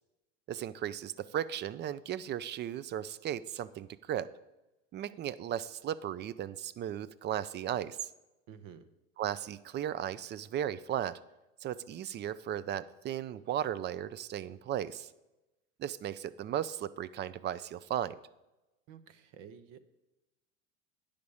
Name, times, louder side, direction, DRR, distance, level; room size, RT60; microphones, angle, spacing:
voice 1, 0.5-4.3 4.9-8.1 9.2-11.2 11.6-15.1 15.8-18.2, right 10 dB, 30° right, 17 dB, 0.4 m, -36 dB
voice 2, 8.5-8.9 18.9-19.8, right 8 dB, 55° right, 12 dB, 0.9 m, -51 dB
9.4 x 5.1 x 7.0 m, 1.0 s
supercardioid pair, 95°, 38 cm